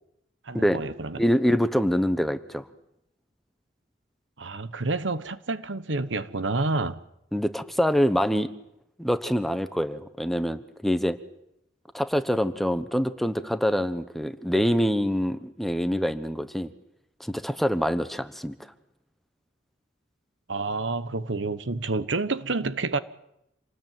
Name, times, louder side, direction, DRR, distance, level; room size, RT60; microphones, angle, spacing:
voice 1, 0.5-1.2 4.4-7.0 20.5-23.0, right 3 dB, 70° right, 1.1 m, -29 dB
voice 2, 1.2-2.7 7.3-8.5 9.0-11.2 11.9-16.7 17.2-18.6, equal, ahead, 1.1 m, -25 dB
27.0 x 19.5 x 9.2 m
head